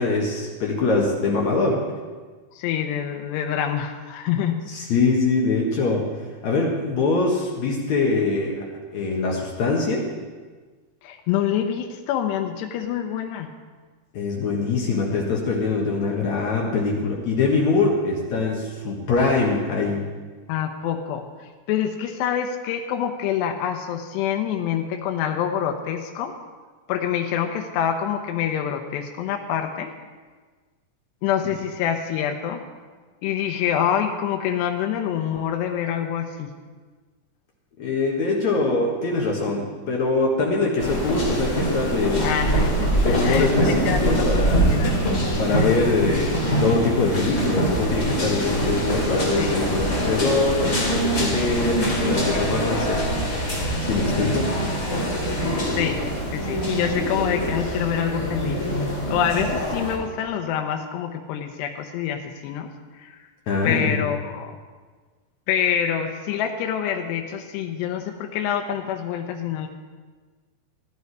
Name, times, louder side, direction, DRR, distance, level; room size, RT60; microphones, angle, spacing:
voice 1, 0.0-1.8 4.7-6.1 6.4-8.7 8.9-10.0 14.1-20.1 37.8-42.3 43.0-43.7 44.1-44.6 45.4-53.0 53.8-54.5 63.5-64.0, left 3 dB, 60° left, -2 dB, 2.1 m, -23 dB
voice 2, 2.6-4.6 11.0-13.5 20.5-26.3 26.9-29.9 31.2-32.6 33.2-36.5 42.2-45.0 45.5-45.7 49.4-49.6 55.7-56.0 56.3-58.6 59.1-62.7 62.9-63.2 63.6-64.6 65.5-69.7, left 9 dB, 80° left, 3 dB, 2.9 m, -26 dB
sound 1, 40.8-60.0, right 1 dB, 25° left, 2.1 m, -24 dB
15.5 x 11.0 x 4.7 m, 1.4 s
omnidirectional pair, 5.0 m